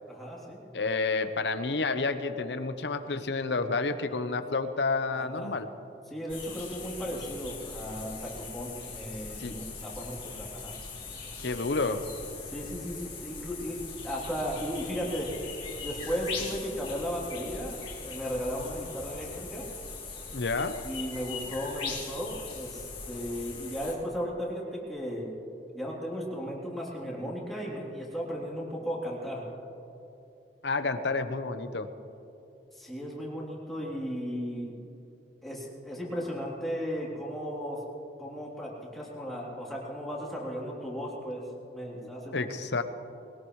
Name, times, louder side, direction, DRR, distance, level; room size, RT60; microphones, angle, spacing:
voice 1, 0.1-0.6 5.1-5.5 6.1-10.8 12.4-15.3 15.8-17.8 18.0-19.7 20.8-25.3 25.7-29.4 32.7-34.8 35.4-37.8 38.2-42.5, equal, ahead, -5 dB, 3.3 m, -35 dB
voice 2, 0.7-5.7 9.4-9.5 11.4-12.0 20.3-20.8 30.6-31.9 41.9-42.8, left 3 dB, 75° left, 9 dB, 0.9 m, -30 dB
sound 1, 6.3-23.9, left 4 dB, 30° left, 3.0 m, -41 dB
21.5 x 19.0 x 3.2 m, 2.9 s
head